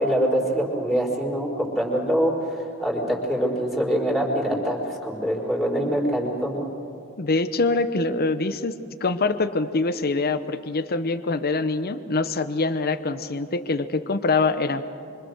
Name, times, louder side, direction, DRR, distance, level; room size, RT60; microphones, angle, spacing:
voice 1, 0.0-6.7, equal, ahead, -2 dB, 4.6 m, -24 dB
voice 2, 7.2-14.8, left 3 dB, 45° left, 10 dB, 0.9 m, -24 dB
25.5 x 25.5 x 6.5 m, 2.5 s
head